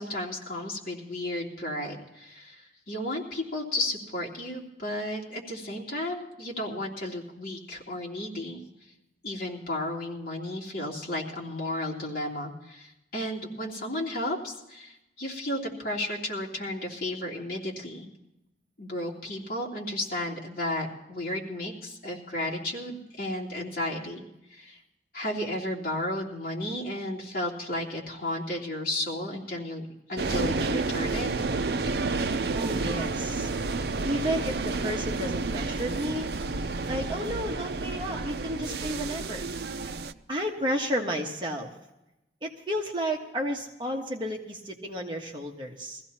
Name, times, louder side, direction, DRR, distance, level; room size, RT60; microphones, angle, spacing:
voice 1, 0.0-8.6 9.2-18.1 18.8-24.2 24.5-24.8 25.1-29.8 30.1-31.3, left 1 dB, 55° left, -4 dB, 3.1 m, -33 dB
sound 1, 30.2-40.1, right 3 dB, 65° right, 0.6 m, -30 dB
voice 2, 32.5-33.5 34.0-36.3 36.9-39.4 40.3-41.7 42.4-46.0, equal, 25° right, 1 dB, 1.5 m, -32 dB
22.5 x 15.5 x 2.9 m, 0.89 s
head